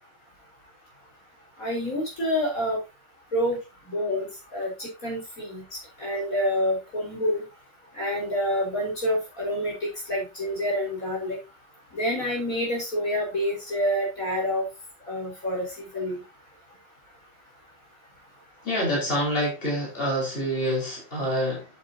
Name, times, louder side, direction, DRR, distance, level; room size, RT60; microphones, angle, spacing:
voice 1, 1.6-2.8 3.3-3.6 3.9-4.3 4.5-5.6 6.0-7.4 8.0-9.7 10.1-11.4 11.9-14.6 15.1-15.7 15.9-16.2, equal, 50° left, 5.8 m, -27 dB
voice 2, 18.6-21.7, equal, 30° left, 5.5 m, -26 dB
11.5 x 8.7 x 2.9 m
omnidirectional pair, 1.9 m